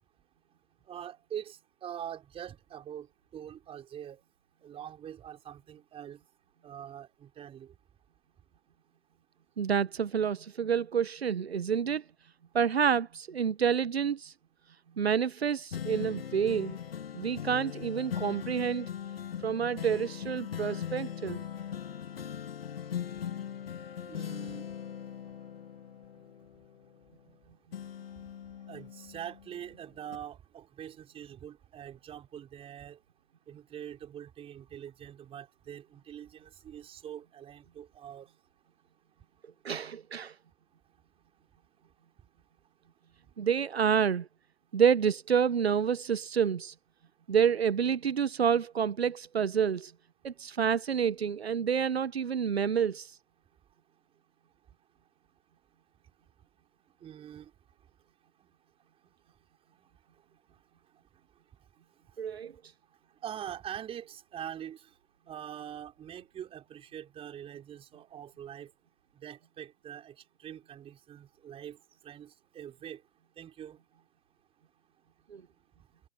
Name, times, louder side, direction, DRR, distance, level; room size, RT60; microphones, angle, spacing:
voice 1, 0.9-4.2 4.6-6.2 6.6-7.7 24.1-24.7 28.7-33.0 33.5-38.3 57.0-57.5 59.8-59.9 63.2-64.9 65.3-68.7 69.1-71.8 72.0-73.0 73.4-73.8, right 10 dB, 20° right, 4.7 m, -44 dB
voice 2, 9.6-12.0 12.5-14.3 15.0-16.8 17.1-18.9 19.4-21.4 39.6-40.3 43.4-44.3 44.7-46.7 47.3-49.9 50.2-53.2 62.2-62.5 75.3-75.4, right 7 dB, 80° right, 1.0 m, -28 dB
sound 1, 15.7-27.4 27.7-29.6 30.1-30.2, left 9 dB, 65° left, 2.5 m, -40 dB
hypercardioid pair, 125°, 31 cm